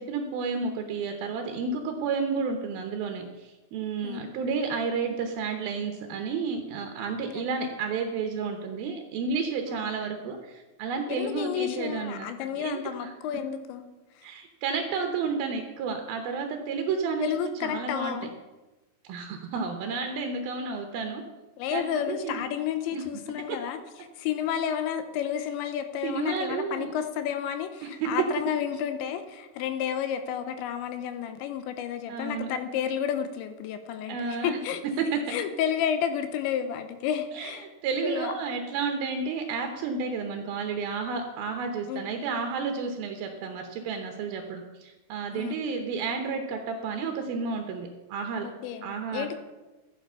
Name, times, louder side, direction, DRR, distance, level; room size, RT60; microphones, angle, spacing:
voice 1, 0.0-13.1 14.2-17.3 17.6-18.2 19.1-21.2 21.7-22.4 22.9-23.0 26.0-26.9 27.8-28.1 32.1-32.5 34.1-34.6 35.0-35.2 37.3-37.5 37.8-48.5 48.8-49.4, right 5 dB, 75° right, 4 dB, 2.2 m, -31 dB
voice 2, 4.0-4.4 7.3-7.5 9.7-9.9 11.1-13.9 14.2-14.3 17.2-18.3 21.6-23.8 24.2-35.0 35.3-37.7 38.0-38.3 41.9-42.0 45.3-45.6 48.4-49.4, left 9 dB, 80° left, 9 dB, 3.0 m, -31 dB
12.0 x 10.0 x 5.5 m, 1.1 s
omnidirectional pair, 5.4 m